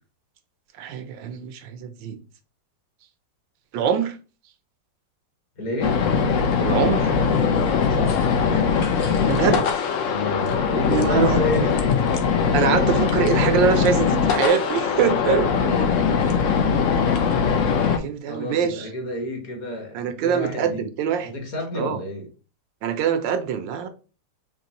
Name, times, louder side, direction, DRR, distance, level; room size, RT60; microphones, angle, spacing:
voice 1, 0.8-2.2 3.7-4.2 6.6-7.1 9.2-9.6 10.9-11.7 12.5-15.5 17.9-18.9 19.9-21.3 21.7-22.0 22.8-23.9, right 7 dB, 80° right, 1.3 m, -23 dB
voice 2, 5.6-6.0 7.9-9.5 10.0-11.8 15.5-17.0 18.3-20.8 21.2-22.3, left 1 dB, 50° left, 1.5 m, -31 dB
sound 1, 5.8-18.0, left 6 dB, 70° left, 0.7 m, -21 dB
5.2 x 3.1 x 2.8 m
omnidirectional pair, 2.0 m